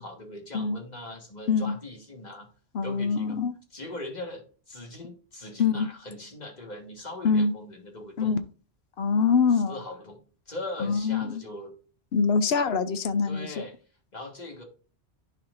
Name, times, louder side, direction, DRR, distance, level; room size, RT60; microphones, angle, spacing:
voice 1, 0.0-2.5 2.8-3.4 3.7-8.4 9.5-11.7 13.2-13.8 14.1-14.6, left 1 dB, 40° left, 2 dB, 1.8 m, -40 dB
voice 2, 2.7-3.5 5.6-5.9 7.2-7.5 8.2-8.4 9.0-9.8 10.8-11.4 12.1-13.6, left 5 dB, 70° left, 11 dB, 0.9 m, -24 dB
11.0 x 4.4 x 2.6 m, 0.37 s
omnidirectional pair, 1.1 m